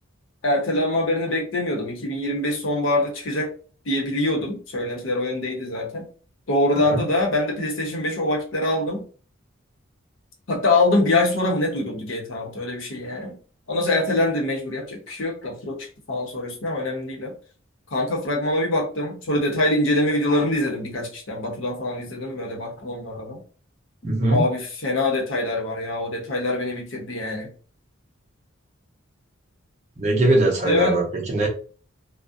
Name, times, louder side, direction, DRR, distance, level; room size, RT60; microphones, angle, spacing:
voice 1, 0.4-3.5 3.9-6.1 6.5-9.0 10.5-13.4 13.7-15.8 16.1-17.3 17.9-23.4 24.3-27.5 30.6-31.0, left 2 dB, 65° left, 0 dB, 0.7 m, -24 dB
voice 2, 6.7-7.0 24.0-24.4 30.0-31.5, right 2 dB, 35° right, 0 dB, 0.6 m, -21 dB
2.4 x 2.0 x 2.5 m, 0.39 s
head